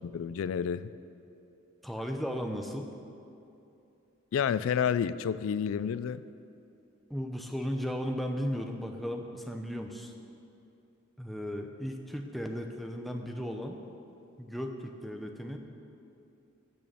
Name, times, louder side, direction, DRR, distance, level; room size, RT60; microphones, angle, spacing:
voice 1, 0.1-0.8 4.3-6.2, left 7 dB, 90° left, 15 dB, 0.3 m, -29 dB
voice 2, 1.8-2.9 7.1-10.1 11.2-13.8 14.4-15.6, equal, ahead, 3 dB, 0.7 m, -35 dB
14.0 x 6.2 x 6.9 m, 2.8 s
head